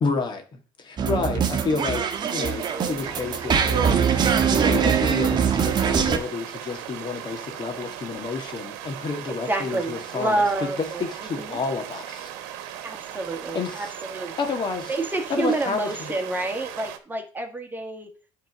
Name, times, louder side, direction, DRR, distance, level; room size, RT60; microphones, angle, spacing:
voice 1, 0.0-4.0 4.4-12.3 13.5-13.9 14.4-14.9 15.3-16.1, left 4 dB, 40° left, 5 dB, 1.7 m, -30 dB
sound 1, 1.0-6.2, right 7 dB, 35° right, 1.2 m, -22 dB
sound 2, 2.1-17.0, right 11 dB, 75° right, 1.1 m, -38 dB
voice 2, 9.5-11.6 12.8-14.3 14.9-18.1, right 2 dB, 15° right, 4 dB, 1.6 m, -28 dB
9.3 x 3.8 x 6.0 m, 0.38 s
supercardioid pair, 85°, 12 cm